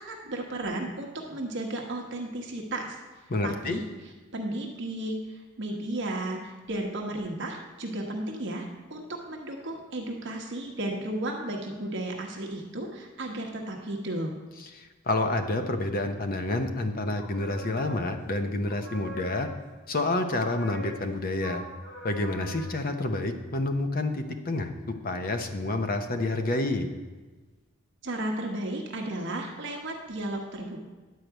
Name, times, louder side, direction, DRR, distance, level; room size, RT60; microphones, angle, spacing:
voice 1, 0.0-3.8 4.3-14.3 28.0-30.8, right 1 dB, 55° right, 1 dB, 1.2 m, -34 dB
voice 2, 3.3-3.8 14.6-19.5 19.9-21.6 22.0-26.9, left 2 dB, 40° left, 7 dB, 0.8 m, -29 dB
sound 1, 17.2-18.4 18.6-19.8 20.3-22.8, left 1 dB, 80° left, 3.1 m, -43 dB
10.5 x 4.8 x 8.0 m, 1.3 s
head